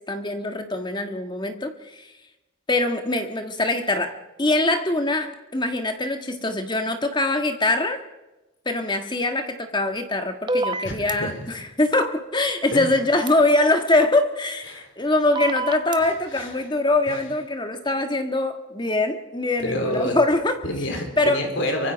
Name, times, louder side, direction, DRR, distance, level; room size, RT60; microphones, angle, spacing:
voice 1, 0.1-2.1 2.7-4.1 4.4-8.0 8.6-20.6 21.2-21.5, left 2 dB, 20° left, 7 dB, 1.5 m, -23 dB
sound 1, 10.5-11.1 13.3-13.4 15.4-16.0, right 2 dB, 20° right, 0.8 m, -26 dB
voice 2, 10.8-11.5 12.7-12.9 14.7-14.9 16.0-16.5 17.1-17.2 19.6-20.2 20.6-21.9, left 1 dB, 60° left, 3 dB, 4.1 m, -28 dB
24.5 x 24.0 x 5.2 m, 1.1 s
head